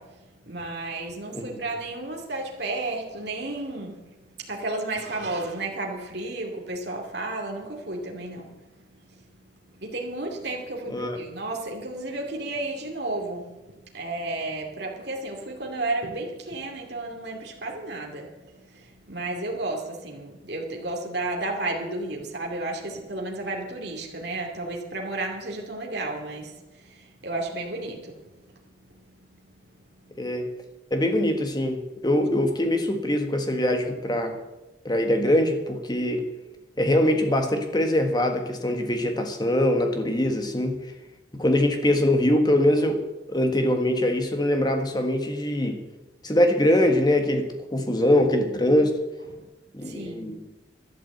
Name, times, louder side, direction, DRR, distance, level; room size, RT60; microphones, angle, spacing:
voice 1, 0.0-9.2 9.7-29.4 30.0-30.2 49.3-49.5 49.8-50.3, right 2 dB, 60° right, 2.6 m, -33 dB
voice 2, 30.2-30.5 30.9-34.4 34.8-36.3 36.8-40.8 41.3-43.0 43.3-45.8 46.2-49.0 49.7-50.4, left 1 dB, 20° left, 1.6 m, -23 dB
12.5 x 11.5 x 8.0 m
head